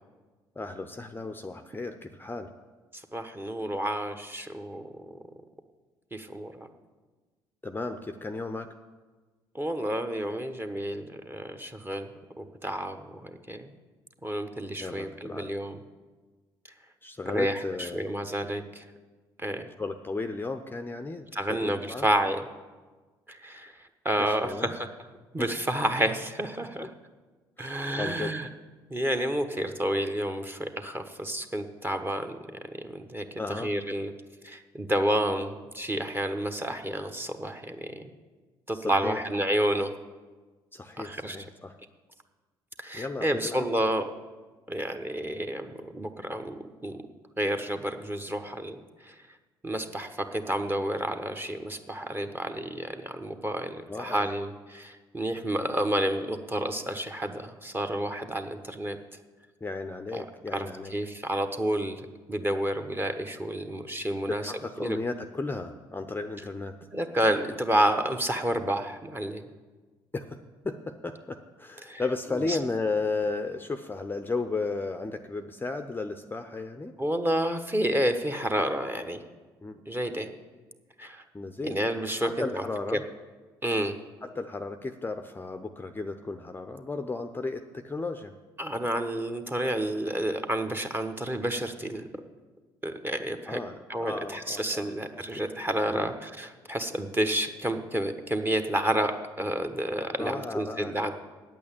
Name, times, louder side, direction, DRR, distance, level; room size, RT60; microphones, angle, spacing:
voice 1, 0.6-2.5 7.6-8.7 14.8-15.5 17.0-18.0 19.8-22.1 24.2-24.7 25.4-25.5 27.6-28.3 33.4-33.7 38.7-39.2 40.7-41.8 42.9-43.6 53.9-54.3 59.6-60.9 64.2-66.7 70.1-70.4 70.6-76.9 79.6-79.8 81.3-81.8 82.2-83.0 84.2-88.3 93.5-95.4 95.9-96.1 100.2-101.0, left 3 dB, 15° left, 7 dB, 0.7 m, -34 dB
voice 2, 2.9-4.9 6.1-6.7 9.5-12.1 12.4-13.7 14.2-15.8 17.3-18.9 19.4-19.7 21.3-22.4 23.3-24.9 25.3-26.9 27.6-28.5 28.9-32.4 32.8-34.1 34.4-38.0 38.7-39.9 41.0-41.4 42.8-44.1 44.7-47.0 47.4-49.1 49.6-59.0 60.1-60.2 60.5-62.0 62.3-65.0 66.9-69.4 71.8-72.0 72.5-72.6 77.0-79.2 79.9-80.3 81.0-81.2 81.6-82.6 82.9-83.0 83.6-83.9 88.6-92.1 92.8-93.6 93.9-101.1, right 1 dB, 15° right, 6 dB, 1.2 m, -30 dB
9.0 x 8.6 x 8.8 m, 1.3 s
hypercardioid pair, 55°, 13 cm